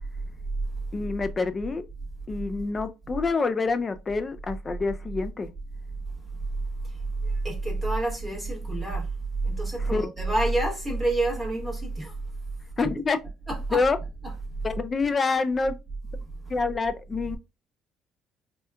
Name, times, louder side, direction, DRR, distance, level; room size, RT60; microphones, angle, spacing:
voice 1, 0.9-1.8 2.3-5.5 9.9-10.1 12.8-13.2 13.7-14.0 14.6-15.8 16.5-17.4, left 4 dB, 20° left, 0.3 m, -26 dB
voice 2, 7.2-9.1 9.4-12.1 13.5-13.8 14.2-14.3, right 2 dB, 10° right, 0.9 m, -27 dB
4.3 x 2.2 x 2.3 m
cardioid pair, 175°, 0 cm